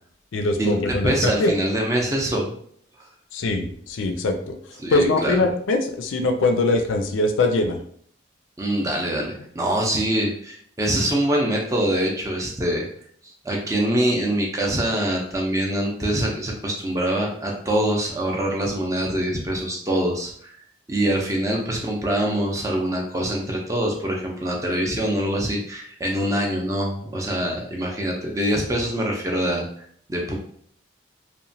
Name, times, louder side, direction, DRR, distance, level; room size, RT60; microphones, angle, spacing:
voice 1, 0.3-1.6 3.3-4.6 4.9-7.8, left 2 dB, 75° left, 5 dB, 0.4 m, -22 dB
voice 2, 1.0-2.5 4.8-5.4 8.6-12.9 13.4-20.5 20.9-29.7 30.1-30.3, right 1 dB, 15° right, -1 dB, 0.4 m, -24 dB
2.9 x 2.1 x 2.6 m, 0.62 s
head